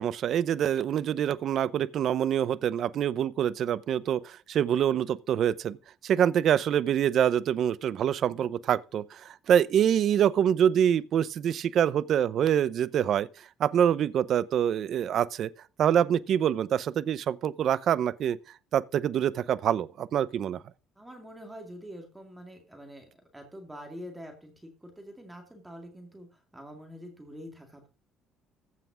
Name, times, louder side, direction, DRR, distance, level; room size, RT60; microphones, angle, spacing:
voice 1, 0.0-5.8 6.0-13.3 13.6-15.5 15.8-18.4 18.7-20.6, right 9 dB, 50° right, 0.6 m, -25 dB
voice 2, 21.0-23.1 23.3-27.9, equal, 10° right, 2.2 m, -45 dB
15.0 x 5.8 x 6.1 m
cardioid pair, 150°, 0 cm